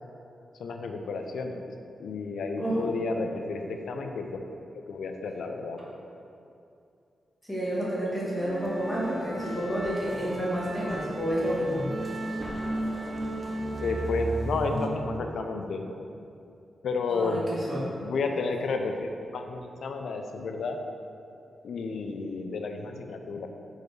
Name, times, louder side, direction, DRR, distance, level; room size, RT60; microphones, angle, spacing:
voice 1, 0.6-1.6 2.0-4.4 4.7-5.8 13.8-15.8 16.8-17.5 18.0-20.8 21.6-23.5, left 3 dB, 75° left, 4 dB, 0.5 m, -31 dB
voice 2, 2.6-2.9 7.5-11.9 17.1-17.8, equal, ahead, -8 dB, 1.4 m, -30 dB
sound 1, 8.4-14.9, right 1 dB, 30° right, 0.5 m, -34 dB
4.6 x 4.6 x 4.8 m, 2.6 s
wide cardioid pair, 175°, 0 cm